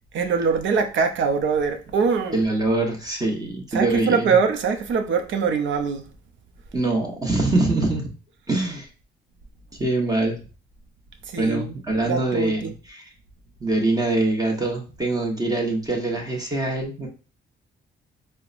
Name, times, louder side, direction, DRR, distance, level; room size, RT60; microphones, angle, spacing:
voice 1, 0.1-2.5 3.7-6.1 11.2-11.8 12.0-12.7, right 5 dB, 70° right, 0.6 m, -23 dB
voice 2, 2.3-4.4 6.7-8.1 8.5-8.9 9.7-10.4 11.4-13.0 13.6-17.1, right 2 dB, 20° right, 1.1 m, -24 dB
4.5 x 2.2 x 2.5 m
cardioid pair, 90°, 20 cm